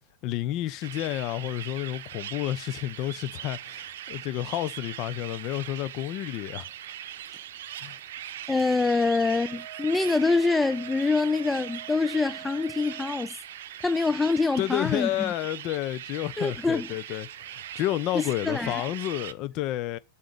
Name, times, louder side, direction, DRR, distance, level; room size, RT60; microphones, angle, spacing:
voice 1, 0.2-6.7 7.8-8.0 14.6-20.0, left 14 dB, 40° left, 0.9 m, -30 dB
sound 1, 0.8-19.3, right 11 dB, 55° right, 0.8 m, -40 dB
voice 2, 8.5-13.3 13.8-15.3 16.4-17.2 18.1-18.9, left 3 dB, 10° left, 0.5 m, -25 dB
Wind instrument woodwind instrument, 9.5-13.3, right 12 dB, 35° right, 1.0 m, -45 dB
7.6 x 7.5 x 8.5 m
figure-of-eight pair, 95°, 0 cm